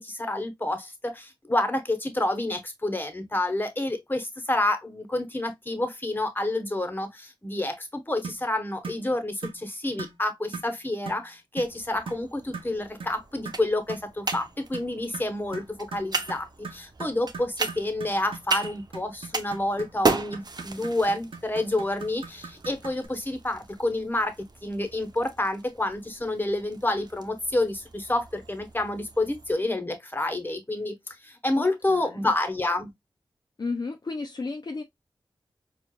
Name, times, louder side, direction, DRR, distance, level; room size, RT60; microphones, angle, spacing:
voice 1, 0.0-32.9, left 1 dB, 20° left, 1.1 m, -29 dB
sound 1, 8.2-8.5 8.8-9.0 9.4-9.6 10.0-10.2 10.5-10.7 11.1-11.3 11.6-11.8 12.1-12.2 12.5-12.7 13.0-13.2 13.4-23.1, right 4 dB, 80° right, 0.8 m, -40 dB
sound 2, 11.6-29.5, right 3 dB, 50° right, 0.6 m, -36 dB
voice 2, 31.6-32.2 33.6-34.8, left 3 dB, 50° left, 0.6 m, -33 dB
4.4 x 2.5 x 2.2 m
cardioid pair, 40°, 9 cm